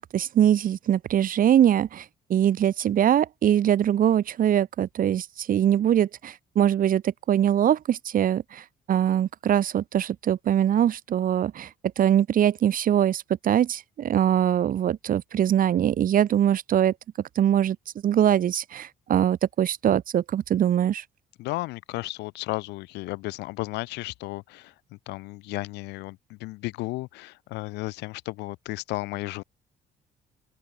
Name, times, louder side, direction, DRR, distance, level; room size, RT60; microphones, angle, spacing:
voice 1, 0.1-2.0 2.3-11.7 12.0-16.9 17.4-17.8 18.0-21.0, right 10 dB, 55° right, 4.0 m, -22 dB
voice 2, 21.4-24.7 25.1-29.4, left 20 dB, 90° left, 5.8 m, -34 dB
open air
cardioid pair, 110°, 17 cm